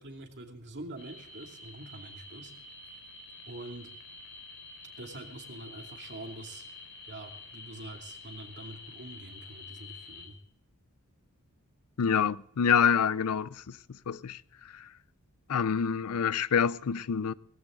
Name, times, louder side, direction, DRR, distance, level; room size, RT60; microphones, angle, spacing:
voice 1, 0.0-2.5 3.5-3.9 5.0-6.6 7.1-10.4, right 2 dB, 55° right, 2.5 m, -45 dB
sound 1, 1.0-10.3, left 3 dB, 55° left, 4.3 m, -48 dB
voice 2, 12.0-13.5 14.1-14.4 15.5-17.3, left 7 dB, 85° left, 0.5 m, -26 dB
17.5 x 15.5 x 3.7 m
head